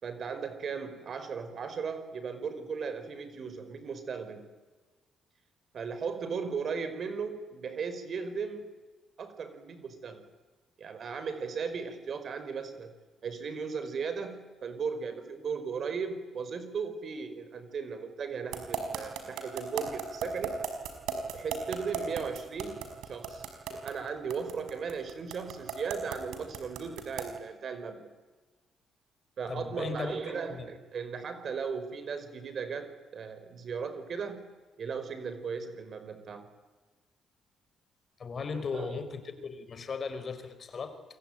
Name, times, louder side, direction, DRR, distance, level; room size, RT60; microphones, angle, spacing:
voice 1, 0.0-4.4 5.7-8.7 9.2-10.2 10.8-12.9 13.2-20.5 21.3-23.4 23.7-28.1 29.4-34.4 34.8-36.5 38.5-39.0, right 5 dB, 55° right, 10 dB, 4.9 m, -37 dB
sound 1, 18.5-27.4, right 8 dB, 90° right, 5.2 m, -35 dB
voice 2, 29.5-30.7 38.2-41.0, left 5 dB, 45° left, 10 dB, 4.6 m, -37 dB
28.5 x 23.0 x 9.2 m, 1.3 s
cardioid pair, 90°, 0 cm